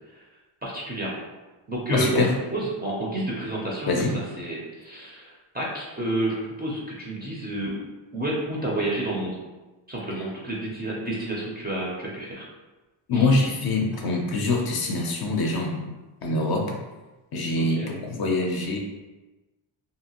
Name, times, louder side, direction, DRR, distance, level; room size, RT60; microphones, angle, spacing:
voice 1, 0.6-1.2 1.7-3.9 4.4-7.8 8.1-9.4 9.9-12.4 13.1-13.3 17.6-17.9, right 1 dB, 20° right, -5 dB, 0.4 m, -30 dB
voice 2, 1.9-2.3 3.9-4.1 13.1-15.9 16.2-16.8 17.3-18.8, left 2 dB, 50° left, 0 dB, 0.5 m, -24 dB
2.7 x 2.5 x 2.8 m, 1.1 s
wide cardioid pair, 165°, 48 cm